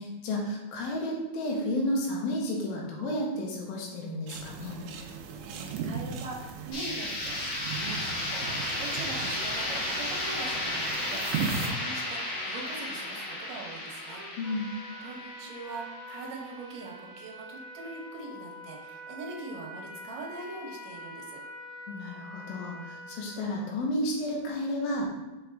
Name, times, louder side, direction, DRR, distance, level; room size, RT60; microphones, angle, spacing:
voice 1, 0.0-4.8 14.4-14.7 21.9-25.1, left 1 dB, 90° left, -1 dB, 3.0 m, -32 dB
sound 1, 4.3-11.7, right 5 dB, 80° right, 1.8 m, -37 dB
voice 2, 5.0-14.4 15.0-21.4, right 3 dB, 60° right, -2 dB, 2.0 m, -42 dB
sound 2, 6.7-16.5, left 1 dB, 55° left, 2.4 m, -34 dB
Trumpet, 14.0-23.6, equal, 30° left, 1.9 m, -45 dB
5.6 x 5.1 x 3.4 m, 1.1 s
omnidirectional pair, 4.1 m